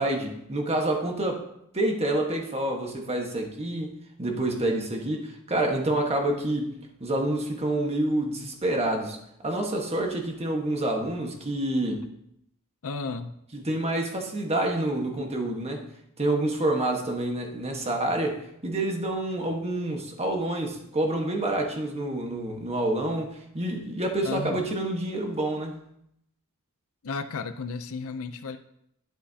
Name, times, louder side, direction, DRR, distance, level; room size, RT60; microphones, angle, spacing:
voice 1, 0.0-1.4 1.7-6.7 7.0-9.2 9.4-12.1 13.5-15.8 16.2-25.7, right 1 dB, 30° right, 2 dB, 1.4 m, -28 dB
voice 2, 12.8-13.4 24.2-24.7 27.0-28.6, left 4 dB, 65° left, 8 dB, 0.6 m, -33 dB
12.0 x 9.8 x 2.8 m, 0.77 s
head